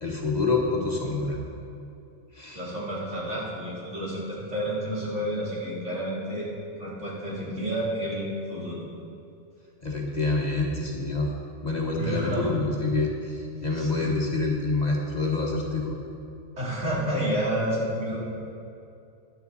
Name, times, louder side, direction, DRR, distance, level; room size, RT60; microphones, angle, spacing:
voice 1, 0.0-1.4 2.3-2.6 9.8-11.3 11.6-16.0, left 3 dB, 35° left, -1 dB, 1.3 m, -27 dB
voice 2, 2.5-6.5 6.8-8.8 12.0-12.6 13.7-14.2 16.6-18.2, equal, 75° right, -6 dB, 3.4 m, -30 dB
14.5 x 10.5 x 4.1 m, 2.6 s
omnidirectional pair, 1.3 m